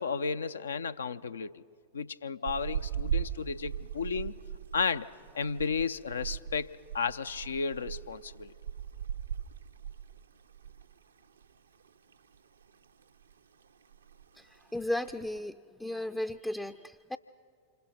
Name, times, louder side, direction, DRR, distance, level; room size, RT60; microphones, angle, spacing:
voice 1, 0.0-1.5 1.9-4.4 4.7-5.1 5.3-8.5, left 5 dB, 70° left, 11 dB, 0.6 m, -33 dB
sound 1, 2.5-11.0 11.2-11.5 11.8-12.7 13.0-13.4 13.6-13.7 13.9-14.4 14.9-15.4, right 8 dB, 70° right, 0.8 m, -38 dB
voice 2, 14.3-17.2, left 1 dB, 5° left, 9 dB, 0.5 m, -35 dB
28.0 x 26.0 x 5.8 m, 2.1 s
figure-of-eight pair, 90°, 0 cm